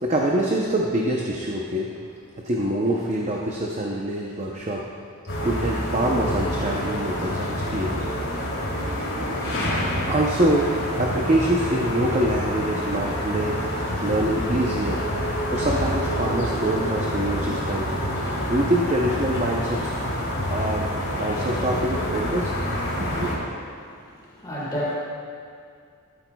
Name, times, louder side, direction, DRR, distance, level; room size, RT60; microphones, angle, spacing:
voice 1, 0.0-2.0 2.4-4.9 5.4-8.1 10.1-13.7 14.0-15.0 15.5-17.9 18.5-19.9 20.5-22.5 23.0-23.3, right 1 dB, 30° right, -1 dB, 0.7 m, -25 dB
sound 1, 5.3-23.4, equal, 65° left, 2.9 m, -27 dB
voice 2, 23.8-25.0, equal, 20° left, -6 dB, 1.7 m, -31 dB
13.0 x 13.0 x 2.3 m, 2.3 s
head